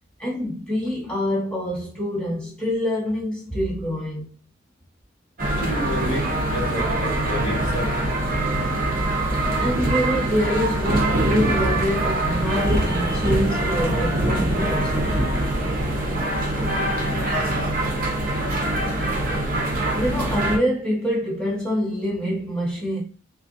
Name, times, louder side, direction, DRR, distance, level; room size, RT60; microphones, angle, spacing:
voice 1, 0.2-4.3 9.6-15.0 19.9-23.0, equal, 5° left, 1.6 m, -25 dB
sound 1, 5.4-20.6, right 1 dB, 45° right, 0.9 m, -23 dB
voice 2, 5.6-7.9, left 1 dB, 75° left, 1.4 m, -30 dB
3.8 x 2.6 x 2.7 m
head